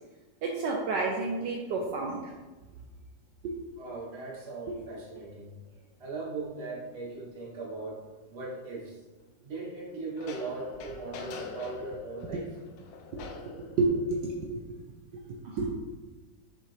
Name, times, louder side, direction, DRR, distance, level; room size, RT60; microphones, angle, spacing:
voice 1, 0.4-2.3 3.4-3.5 4.7-4.8 13.8-14.6 15.3-15.7, right 3 dB, 70° right, 0 dB, 1.3 m, -30 dB
voice 2, 3.8-5.6 6.0-9.0 9.4-12.5, right 3 dB, 35° right, -4 dB, 1.5 m, -39 dB
sound 1, 5.7-5.8 10.2-14.5, left 5 dB, 80° left, 1.4 m, -46 dB
6.8 x 5.3 x 3.3 m, 1.2 s
omnidirectional pair, 2.1 m